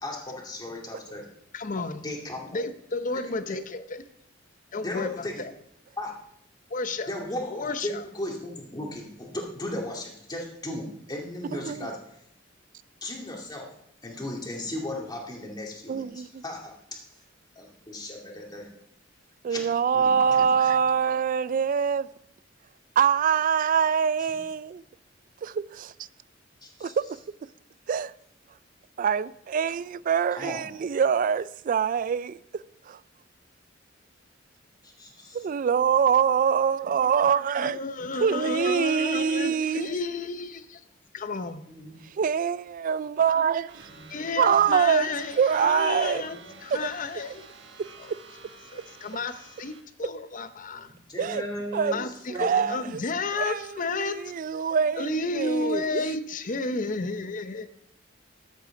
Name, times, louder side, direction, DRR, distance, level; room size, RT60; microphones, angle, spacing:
voice 1, 0.0-1.3 2.0-2.6 3.1-3.2 4.8-5.4 6.0-6.1 7.1-12.0 13.0-13.7 14.0-16.7 17.6-18.7 19.5-19.6 19.9-20.5 26.6-27.0 30.3-30.6 34.8-35.5 41.7-42.0 43.9-44.2 46.1-46.6 50.7-50.8 51.1-53.0, left 1 dB, 20° left, 2.2 m, -36 dB
voice 2, 1.5-2.1 2.5-4.1 4.7-5.5 6.7-7.1 7.5-8.0 37.6-40.8 41.1-41.6 44.1-46.4 46.6-47.4 48.0-48.1 48.7-50.9 51.9-54.2 55.0-57.7, left 3 dB, 45° left, 0.7 m, -32 dB
voice 3, 11.5-11.9 15.9-16.4 19.4-22.1 23.0-24.8 25.4-25.9 26.8-27.0 27.9-28.1 29.0-32.4 32.9-33.0 35.3-37.8 38.2-39.9 42.2-43.8 44.4-45.1 45.4-46.2 46.7-46.8 51.2-51.4 51.7-52.0 52.3-53.0 53.3-56.0, right 7 dB, 45° right, 0.3 m, -24 dB
sound 1, 43.7-49.8, right 4 dB, 65° right, 1.1 m, -49 dB
13.5 x 8.2 x 3.8 m
head